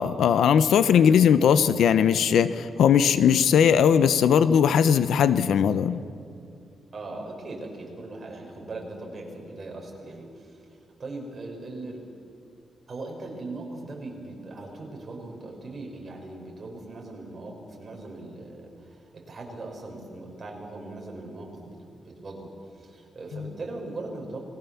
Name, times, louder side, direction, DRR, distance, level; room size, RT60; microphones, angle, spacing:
voice 1, 0.0-6.0, left 8 dB, 85° left, 13 dB, 0.9 m, -19 dB
voice 2, 0.9-1.2 6.9-12.0 12.9-24.4, right 2 dB, 35° right, 0 dB, 5.8 m, -39 dB
29.5 x 20.5 x 7.2 m, 2.5 s
wide cardioid pair, 140°, 0 cm